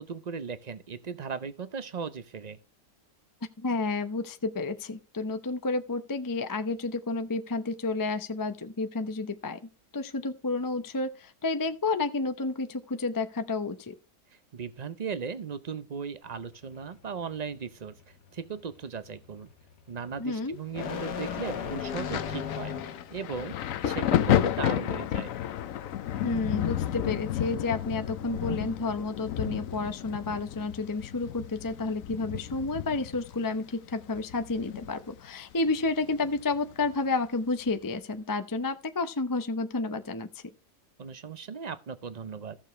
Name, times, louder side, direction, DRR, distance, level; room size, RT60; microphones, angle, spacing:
voice 1, 0.0-2.6 14.5-17.9 18.3-19.5 19.9-23.5 23.8-25.3 41.0-42.6, right 6 dB, 65° right, 0.4 m, -37 dB
voice 2, 3.6-9.6 9.9-14.0 20.2-20.6 26.2-40.4, left 3 dB, 30° left, 0.3 m, -31 dB
sound 1, 16.2-23.2, left 8 dB, 85° left, 1.7 m, -38 dB
Thunder, 21.9-35.3 35.5-36.9 37.7-37.9, left 11 dB, 65° left, 1.0 m, -32 dB
14.5 x 6.9 x 3.1 m
omnidirectional pair, 1.7 m